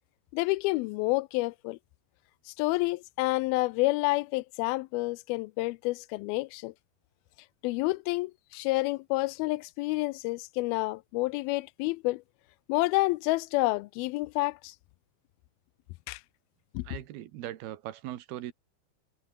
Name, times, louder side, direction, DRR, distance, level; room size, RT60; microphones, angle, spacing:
voice 1, 0.3-1.8 2.6-6.7 7.6-12.2 12.7-14.7 16.1-16.2 16.7-16.9, left 22 dB, 85° left, 2.4 m, -29 dB
voice 2, 16.8-18.5, right 13 dB, 90° right, 3.3 m, -39 dB
omnidirectional pair, 4.3 m